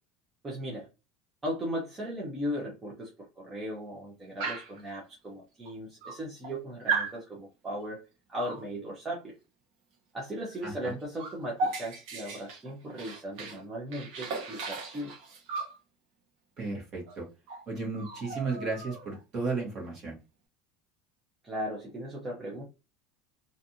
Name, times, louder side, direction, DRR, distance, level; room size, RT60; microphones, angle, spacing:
voice 1, 0.4-0.9 1.4-9.3 10.1-15.1 21.4-22.6, equal, 15° right, -3 dB, 0.6 m, -37 dB
Dog, 4.4-4.8 5.7-5.8 6.0-6.5 6.9-7.2 8.3-8.6 10.5-10.6 10.9-13.6 13.9-15.8 17.1-17.2 17.5-17.6 17.9-19.2, right 4 dB, 55° right, 0.9 m, -35 dB
voice 2, 10.6-10.9 16.6-17.3 17.7-20.2, right 3 dB, 30° right, -1 dB, 1.2 m, -34 dB
2.5 x 2.4 x 2.7 m, 0.28 s
cardioid pair, 175°, 0 cm